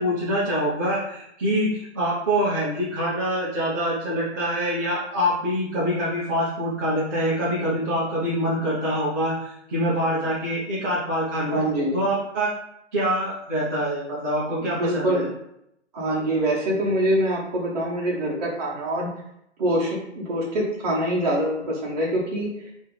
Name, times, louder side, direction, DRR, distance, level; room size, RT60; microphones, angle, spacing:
voice 1, 0.0-11.6 11.9-12.5 12.9-15.2, equal, 15° right, -12 dB, 0.6 m, -25 dB
voice 2, 11.4-12.0 14.6-15.3 15.9-19.1 19.6-22.7, right 1 dB, 35° right, -6 dB, 1.3 m, -25 dB
3.2 x 2.9 x 3.8 m, 0.78 s
hypercardioid pair, 170°, 36 cm